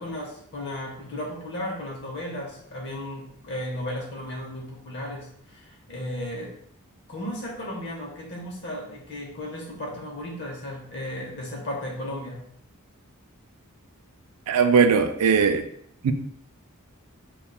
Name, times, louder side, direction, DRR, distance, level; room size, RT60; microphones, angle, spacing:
voice 1, 0.0-6.5 7.1-12.4, left 1 dB, 50° left, 0.8 m, -35 dB
voice 2, 14.5-15.7 16.0-16.1, right 6 dB, 85° right, 0.4 m, -19 dB
5.2 x 2.3 x 2.3 m
head